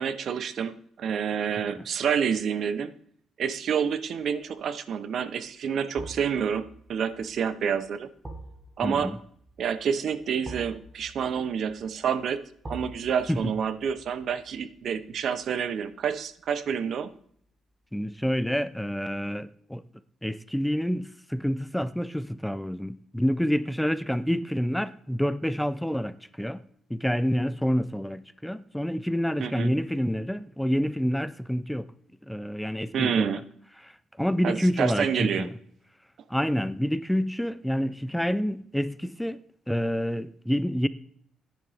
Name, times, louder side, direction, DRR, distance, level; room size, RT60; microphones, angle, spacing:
voice 1, 0.0-2.9 3.4-8.1 8.8-9.1 9.6-12.4 12.7-17.1 29.4-29.7 32.9-33.4 34.4-35.5, right 7 dB, 65° right, 0.8 m, -28 dB
sound 1, 4.2-4.5 6.0-17.0 17.3-17.4, right 2 dB, 25° right, 2.2 m, -47 dB
voice 2, 8.8-9.2 13.3-13.5 17.9-19.8 20.2-26.6 26.9-31.9 32.2-33.4 33.8-35.6 36.3-39.4 39.7-40.9, equal, 5° left, 0.5 m, -28 dB
14.0 x 10.5 x 3.5 m
cardioid pair, 90°, 0 cm